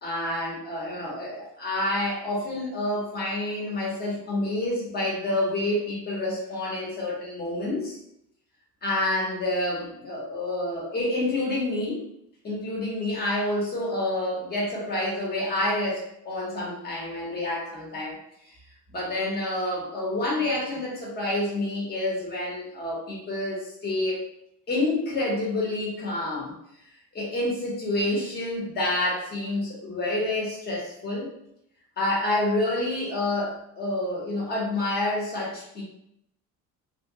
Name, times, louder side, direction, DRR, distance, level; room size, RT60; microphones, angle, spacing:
voice 1, 0.0-8.0 8.8-12.0 12.4-18.2 18.4-18.5 18.9-24.2 24.7-26.5 27.1-31.3 32.0-35.8, left 1 dB, 30° left, -4 dB, 1.4 m, -28 dB
3.4 x 2.5 x 3.0 m, 0.76 s
cardioid pair, 130°, 32 cm